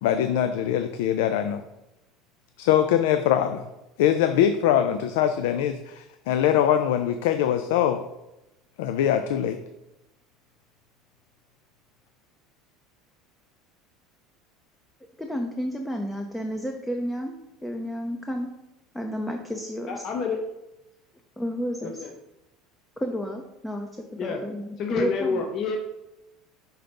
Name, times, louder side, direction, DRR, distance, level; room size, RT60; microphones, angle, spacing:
voice 1, 0.0-1.6 2.6-3.6 4.0-8.0 8.8-9.6, left 10 dB, 85° left, 8 dB, 0.4 m, -22 dB
voice 2, 15.2-17.3 17.6-18.5 18.9-20.0 21.4-21.9 23.0-25.4, equal, 5° left, 3 dB, 0.6 m, -31 dB
voice 3, 19.9-20.4 21.8-22.1 24.2-24.4 24.8-25.8, left 5 dB, 40° left, 3 dB, 0.7 m, -28 dB
5.7 x 3.9 x 5.3 m, 0.92 s
cardioid pair, 145°, 0 cm